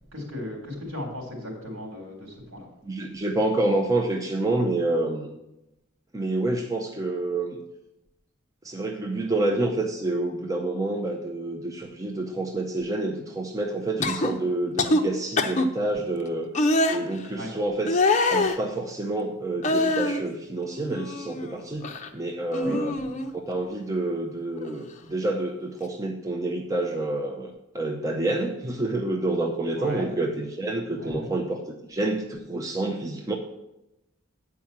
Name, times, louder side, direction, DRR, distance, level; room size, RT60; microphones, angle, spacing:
voice 1, 0.1-2.7 17.4-17.5 22.6-23.1 29.8-30.1 30.9-31.3, left 1 dB, 70° right, 1 dB, 3.4 m, -36 dB
voice 2, 2.8-5.3 6.1-7.6 8.6-16.5 16.9-18.0 18.3-23.0 23.3-33.4, right 2 dB, 15° right, 2 dB, 0.6 m, -28 dB
sound 1, 14.0-14.3 14.8-15.0 15.4-15.7 16.5-17.0 17.9-18.6 19.6-20.2 20.7-21.5 21.8-22.1 22.5-23.3 24.6-24.8, left 2 dB, 35° left, 0.7 m, -24 dB
9.0 x 4.7 x 7.3 m, 0.90 s
head